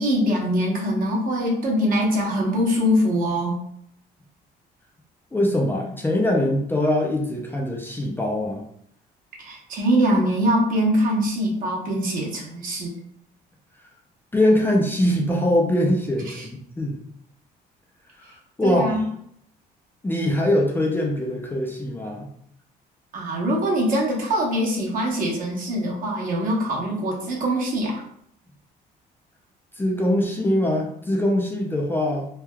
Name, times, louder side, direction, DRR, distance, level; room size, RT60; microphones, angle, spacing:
voice 1, 0.0-3.6 9.4-12.9 16.3-16.4 18.6-19.0 23.1-28.0, equal, 55° right, -2 dB, 1.0 m, -23 dB
voice 2, 5.3-8.6 14.3-17.0 18.6-19.0 20.0-22.3 29.8-32.3, left 1 dB, 10° left, -1 dB, 0.4 m, -22 dB
3.2 x 2.2 x 2.2 m, 0.69 s
cardioid pair, 110°, 17 cm